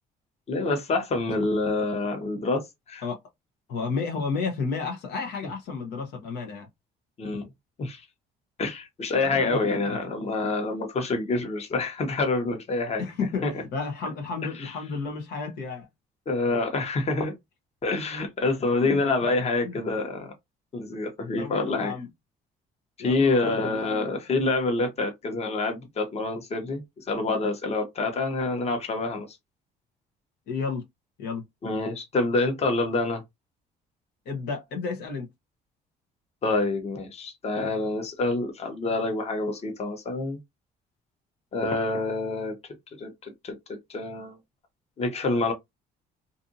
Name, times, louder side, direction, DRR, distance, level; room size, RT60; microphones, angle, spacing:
voice 1, 0.5-3.0 7.2-7.5 7.8-8.0 8.6-13.0 13.4-13.5 14.6-14.7 16.3-17.3 17.8-20.3 20.7-21.9 23.0-29.3 31.6-33.2 36.4-40.4 41.5-42.5 43.0-44.4 45.0-45.5, left 3 dB, 40° left, 1.0 m, -27 dB
voice 2, 3.7-6.7 9.2-9.6 13.0-15.9 18.8-19.0 19.6-19.8 21.4-22.1 23.0-23.8 30.5-30.8 31.2-31.4 34.3-35.3, left 4 dB, 80° left, 0.9 m, -32 dB
2.6 x 2.6 x 2.6 m
cardioid pair, 110°, 17 cm